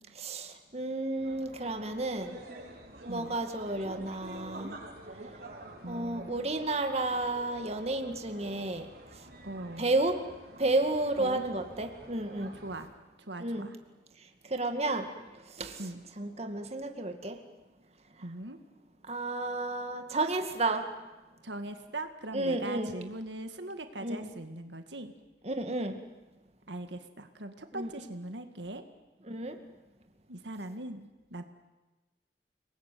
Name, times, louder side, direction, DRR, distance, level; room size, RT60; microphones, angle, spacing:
voice 1, 0.1-2.4 3.0-4.8 5.9-8.9 9.8-10.2 10.6-12.5 13.4-13.7 14.4-15.8 16.2-17.4 19.0-20.9 22.3-22.9 24.0-24.3 25.4-26.0 27.7-27.9 29.3-29.6, right 2 dB, 35° right, 6 dB, 2.2 m, -32 dB
sound 1, 1.1-12.9, right 1 dB, 60° right, 5.7 m, -48 dB
voice 2, 3.1-3.4 5.8-6.5 9.4-10.0 11.2-11.6 12.5-12.9 13.2-13.8 15.8-16.0 18.2-18.6 21.4-25.1 26.7-28.8 30.3-31.4, right 1 dB, 80° right, 7 dB, 2.1 m, -41 dB
29.5 x 20.5 x 9.4 m, 1.1 s
head